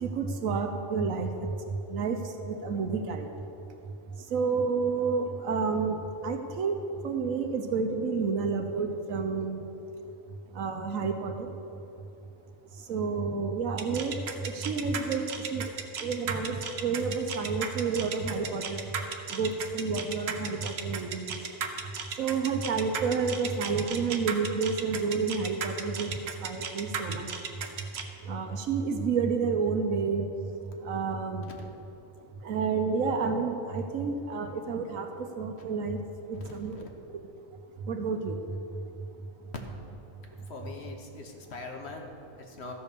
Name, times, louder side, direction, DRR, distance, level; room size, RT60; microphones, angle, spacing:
voice 1, 0.0-1.3 1.9-2.2 2.5-3.3 4.3-6.0 6.2-6.8 7.0-9.6 10.6-11.5 12.9-14.2 14.4-15.2 15.5-15.7 16.0-18.8 19.3-21.3 22.2-26.1 26.4-27.3 28.3-30.3 30.8-31.4 32.4-35.1 35.4-36.0 36.3-36.8 37.9-38.4, right 5 dB, 70° right, 5 dB, 1.2 m, -29 dB
sound 1, 13.8-28.0, right 6 dB, 55° right, 1.0 m, -35 dB
voice 2, 36.3-36.9 40.5-42.7, left 3 dB, 50° left, 2 dB, 1.3 m, -43 dB
14.0 x 5.2 x 6.7 m, 2.8 s
omnidirectional pair, 1.5 m